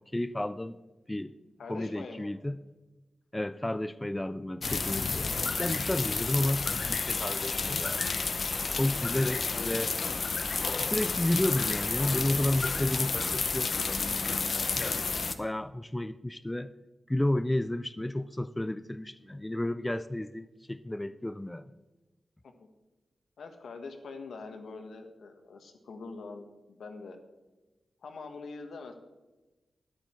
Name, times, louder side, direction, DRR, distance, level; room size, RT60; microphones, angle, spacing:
voice 1, 0.1-0.8 1.1-1.3 1.7-2.6 3.3-8.1 8.8-9.9 10.8-15.0 15.4-16.7 17.1-21.7, left 1 dB, 10° left, 0.3 m, -32 dB
voice 2, 1.6-2.3 9.2-9.7 13.0-13.1 22.4-22.5 23.4-27.2 28.0-28.9, left 4 dB, 90° left, 1.5 m, -44 dB
sound 1, 4.6-15.3, left 4 dB, 45° left, 0.8 m, -31 dB
12.5 x 11.0 x 4.5 m
wide cardioid pair, 175°, 0 cm